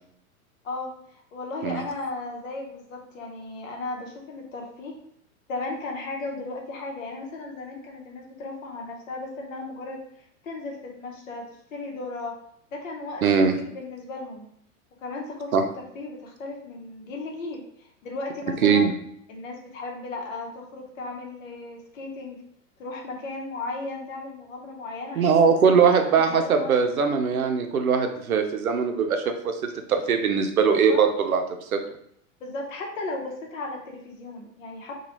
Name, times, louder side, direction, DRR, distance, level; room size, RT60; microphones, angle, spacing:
voice 1, 0.6-5.0 5.5-11.5 11.7-12.3 12.7-14.5 15.0-18.9 19.3-22.4 22.8-26.7 30.9-31.0 32.4-35.0, left 2 dB, 65° left, 1 dB, 0.9 m, -36 dB
voice 2, 13.2-13.6 15.5-15.6 18.6-18.9 25.2-29.5 29.9-31.4 31.7-31.8, right 6 dB, 85° right, 5 dB, 0.5 m, -21 dB
3.0 x 2.3 x 2.9 m, 0.70 s
figure-of-eight pair, 95°, 41 cm